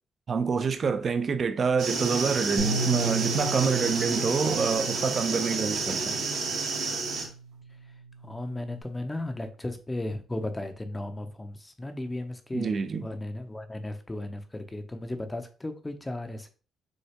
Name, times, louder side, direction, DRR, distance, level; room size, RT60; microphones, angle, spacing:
voice 1, 0.3-6.2 12.5-13.1, right 5 dB, 45° right, 0.6 m, -27 dB
sound 1, 1.8-7.3, right 4 dB, 75° right, 1.4 m, -30 dB
Bass guitar, 2.6-8.8, right 3 dB, 80° left, 2.2 m, -37 dB
voice 2, 8.2-12.7 13.0-16.5, left 1 dB, 15° left, 0.7 m, -35 dB
6.3 x 2.3 x 2.9 m
cardioid pair, 90°, 0 cm